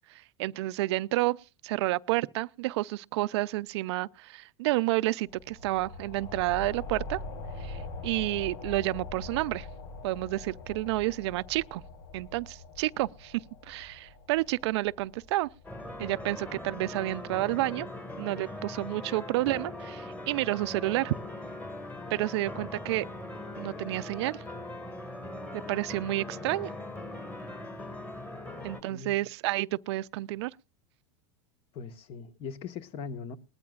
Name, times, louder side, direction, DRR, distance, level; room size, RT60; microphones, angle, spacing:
voice 1, 0.4-1.4 1.6-7.2 7.6-9.7 10.0-11.8 12.1-15.5 16.0-17.9 18.2-21.1 22.1-23.1 23.6-24.4 25.7-26.7 28.6-30.5, right 18 dB, 70° right, 0.5 m, -30 dB
sound 1, 5.2-16.5, left 2 dB, 75° left, 3.3 m, -43 dB
sound 2, 15.6-28.8, left 2 dB, 10° left, 2.0 m, -40 dB
voice 2, 28.6-29.3 31.7-33.4, left 5 dB, 40° left, 1.4 m, -41 dB
20.0 x 13.0 x 2.4 m
supercardioid pair, 140°, 14 cm